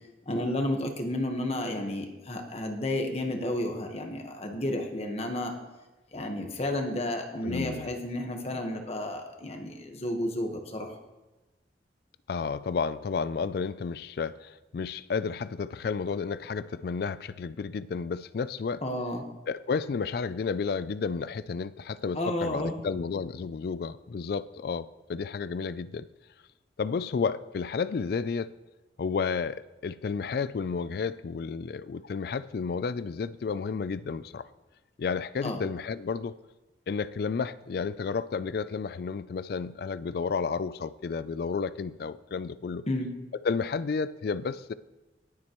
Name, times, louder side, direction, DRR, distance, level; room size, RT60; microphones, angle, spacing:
voice 1, 0.3-5.5 6.1-10.9 18.8-19.2 22.1-22.8 35.4-35.6 42.9-43.1, left 1 dB, 35° left, 4 dB, 1.3 m, -31 dB
voice 2, 7.4-7.9 12.3-18.8 19.5-26.1 26.8-28.5 29.0-34.5 35.0-36.3 36.9-42.8 43.4-44.7, left 5 dB, 60° left, 16 dB, 0.3 m, -32 dB
19.5 x 7.5 x 3.0 m, 1.1 s
head